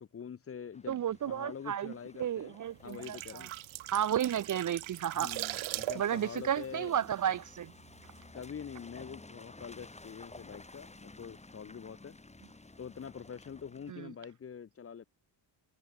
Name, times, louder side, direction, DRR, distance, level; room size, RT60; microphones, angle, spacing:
voice 1, 0.0-1.0 1.2-2.6 2.8-3.5 5.2-6.9 8.3-12.2 12.8-15.0, left 7 dB, 30° left, 0.7 m, -45 dB
Car passing by / Engine, 0.7-13.9, left 2 dB, 15° left, 7.1 m, -55 dB
voice 2, 0.9-3.5 3.9-5.4 5.9-7.7 13.9-14.1, right 10 dB, 40° right, 0.5 m, -32 dB
sound 1, 2.7-7.6 7.9-8.1, right 17 dB, 75° right, 0.7 m, -40 dB
cardioid pair, 130°, 48 cm